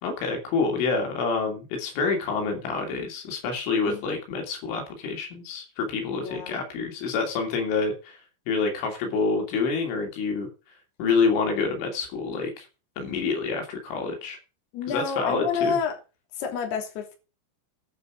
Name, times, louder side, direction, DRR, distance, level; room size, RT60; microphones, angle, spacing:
voice 1, 0.0-8.2 8.5-10.5 11.0-12.7 13.0-14.4 14.9-15.8, left 4 dB, 80° left, 5.4 m, -27 dB
voice 2, 6.2-6.6 14.7-16.0 16.3-17.2, left 6 dB, 60° left, 5.0 m, -29 dB
11.5 x 7.8 x 6.4 m
omnidirectional pair, 5.5 m